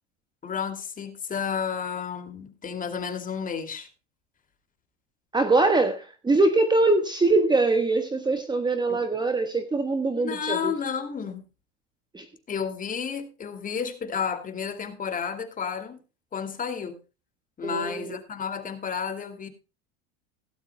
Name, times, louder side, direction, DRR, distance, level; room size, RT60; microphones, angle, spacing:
voice 1, 0.4-3.9 8.9-9.0 10.1-11.4 12.5-16.0 16.3-17.0 17.6-19.5, left 6 dB, 25° left, 2.5 m, -31 dB
voice 2, 5.3-10.7 12.1-12.2 17.6-18.2, right 3 dB, 10° right, 1.4 m, -23 dB
17.0 x 11.5 x 2.3 m
supercardioid pair, 130°, 35 cm